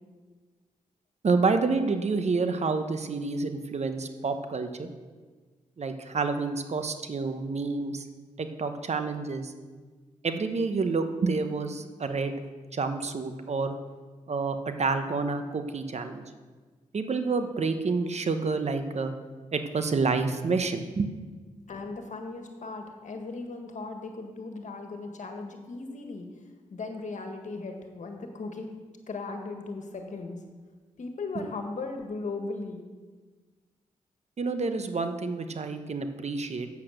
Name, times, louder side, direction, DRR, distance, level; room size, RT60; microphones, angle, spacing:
voice 1, 1.2-4.9 5.8-8.1 8.4-9.5 10.2-12.3 12.7-13.8 14.3-16.2 16.9-19.1 19.5-21.4 34.4-36.7, right 4 dB, 55° right, 8 dB, 1.0 m, -28 dB
voice 2, 21.7-26.2 26.7-28.7 29.1-30.4 31.0-32.8, left 3 dB, 65° left, 4 dB, 1.6 m, -37 dB
8.3 x 7.9 x 6.6 m, 1.4 s
cardioid pair, 60°, 14 cm